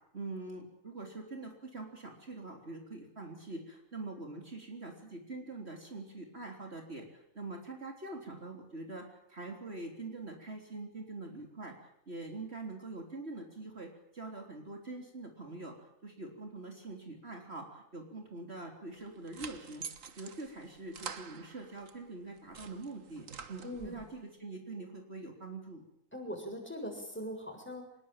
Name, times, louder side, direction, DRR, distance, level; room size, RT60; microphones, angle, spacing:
voice 1, 0.1-11.7 12.1-15.7 16.0-19.8 20.2-25.8, right 2 dB, 45° right, 2 dB, 3.9 m, -44 dB
sound 1, 18.9-22.0 22.4-24.1, right 6 dB, 65° right, 1.8 m, -47 dB
voice 2, 23.6-24.1 26.1-28.0, equal, 10° left, 3 dB, 7.1 m, -41 dB
25.5 x 21.0 x 9.1 m, 0.74 s
omnidirectional pair, 1.5 m